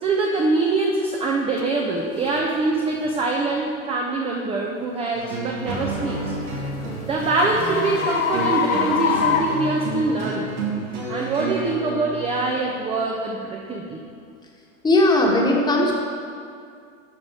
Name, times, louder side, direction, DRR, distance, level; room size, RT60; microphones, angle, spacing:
voice 1, 0.0-6.3 7.0-10.6 11.1-14.0, right 3 dB, 15° right, 0 dB, 0.5 m, -24 dB
sound 1, 1.6-1.7 2.2-2.4 3.0-3.3 5.9-10.4, left 7 dB, 65° left, 1.0 m, -26 dB
sound 2, 5.1-12.5, right 2 dB, 90° right, 2.1 m, -30 dB
voice 2, 14.8-15.9, left 1 dB, 10° left, -1 dB, 1.2 m, -18 dB
11.5 x 4.1 x 4.7 m, 2.3 s
hypercardioid pair, 120°, 42 cm